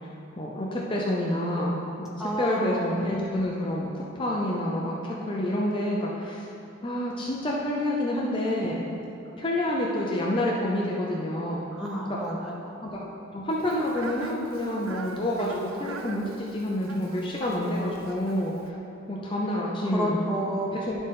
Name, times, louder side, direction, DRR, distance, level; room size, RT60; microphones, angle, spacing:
voice 1, 0.4-6.5 6.8-8.8 9.4-11.7 12.1-12.2 12.8-13.0 13.3-18.8 19.1-20.2 20.7-21.0, left 1 dB, 25° left, -4 dB, 0.6 m, -28 dB
voice 2, 2.2-2.9 11.7-12.8 19.9-20.8, equal, 5° right, -4 dB, 0.8 m, -30 dB
Fowl, 13.5-18.7, right 5 dB, 90° right, 0.4 m, -44 dB
11.5 x 4.0 x 3.7 m, 2.7 s
head